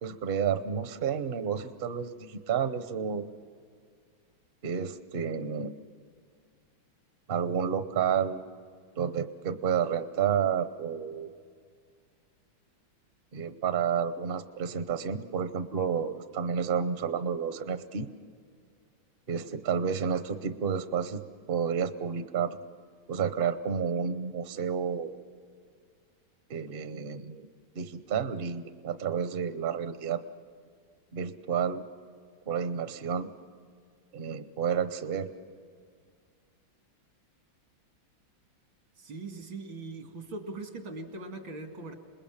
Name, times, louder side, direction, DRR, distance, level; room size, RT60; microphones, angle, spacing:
voice 1, 0.0-3.3 4.6-5.7 7.3-8.5 9.0-11.3 13.3-18.1 19.3-21.2 21.5-22.6 23.1-25.2 26.5-27.5 27.7-30.2 31.1-31.8 32.5-33.3 34.1-35.3, right 7 dB, 50° right, 10 dB, 0.7 m, -30 dB
voice 2, 39.0-41.9, right 3 dB, 90° right, 4 dB, 3.1 m, -40 dB
27.5 x 20.5 x 7.3 m, 2.1 s
omnidirectional pair, 2.1 m